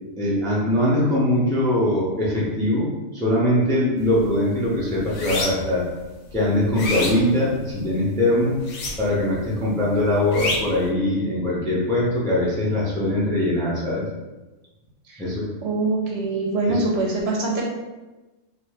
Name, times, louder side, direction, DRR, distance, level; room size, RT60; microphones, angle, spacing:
voice 1, 0.2-5.9 6.3-8.6 9.0-14.0 15.2-15.5 16.7-16.8, left 1 dB, 5° left, -6 dB, 0.3 m, -22 dB
sound 1, 4.0-4.3 4.6-5.8 6.3-7.9 8.6-9.3 9.6-10.8, left 2 dB, 90° left, 1.1 m, -28 dB
voice 2, 15.6-17.6, right 2 dB, 60° right, -2 dB, 0.8 m, -23 dB
2.7 x 2.5 x 3.3 m, 1.1 s
omnidirectional pair, 1.4 m